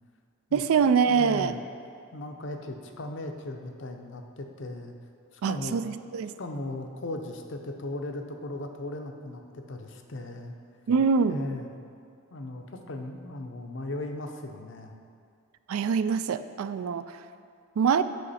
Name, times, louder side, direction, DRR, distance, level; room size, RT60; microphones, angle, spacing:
voice 1, 0.5-1.5 5.4-6.3 10.9-11.4 15.7-17.2 17.8-18.0, right 6 dB, 80° right, 12 dB, 0.3 m, -24 dB
voice 2, 1.0-1.6 2.1-5.0 5.3-5.8 6.4-10.5 11.2-11.8 12.3-14.9, left 2 dB, 55° left, 4 dB, 0.6 m, -37 dB
8.2 x 6.1 x 4.2 m, 2.4 s
head